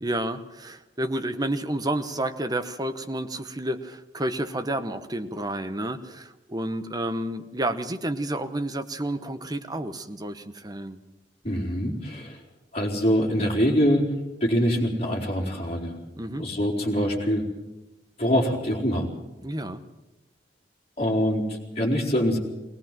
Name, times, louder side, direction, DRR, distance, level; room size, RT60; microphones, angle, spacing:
voice 1, 0.0-11.0 16.1-16.4 19.4-19.8, right 1 dB, 20° right, 9 dB, 1.0 m, -30 dB
voice 2, 11.4-12.4 12.7-14.1 14.4-16.0 16.4-17.4 18.2-19.1 21.0-22.4, equal, 35° left, -1 dB, 4.1 m, -24 dB
21.0 x 19.0 x 7.5 m, 1.0 s
head